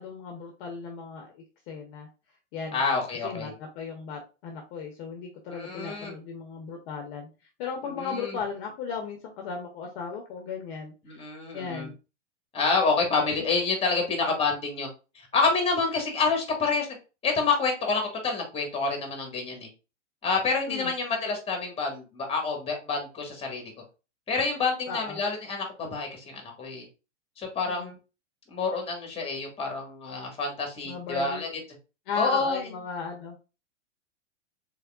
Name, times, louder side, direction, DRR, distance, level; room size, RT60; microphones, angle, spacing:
voice 1, 0.0-2.1 2.5-2.8 3.2-7.3 7.6-11.2 11.5-11.9 20.7-20.9 24.9-25.2 27.7-27.9 30.8-31.4 32.1-33.3, left 5 dB, 45° left, 2 dB, 0.9 m, -36 dB
voice 2, 2.7-3.5 5.5-6.2 7.9-8.4 11.0-11.9 12.5-14.9 15.3-16.9 17.2-19.7 20.2-23.6 24.3-26.8 27.4-28.0 28.5-31.5 32.1-32.6, left 4 dB, 15° left, 2 dB, 1.5 m, -28 dB
3.6 x 3.4 x 2.3 m, 0.31 s
hypercardioid pair, 120°, 37 cm